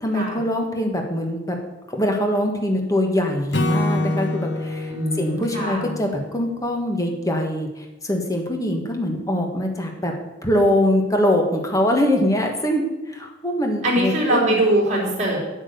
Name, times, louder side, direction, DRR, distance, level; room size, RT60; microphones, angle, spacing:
voice 1, 0.0-1.6 1.9-10.1 10.4-14.6, left 1 dB, 20° left, 2 dB, 1.6 m, -23 dB
Acoustic guitar / Strum, 3.5-6.8, left 1 dB, 65° left, 1.2 m, -26 dB
voice 2, 4.9-5.9 13.8-15.4, right 1 dB, 40° right, -2 dB, 4.0 m, -22 dB
9.0 x 8.3 x 6.8 m, 1.1 s
head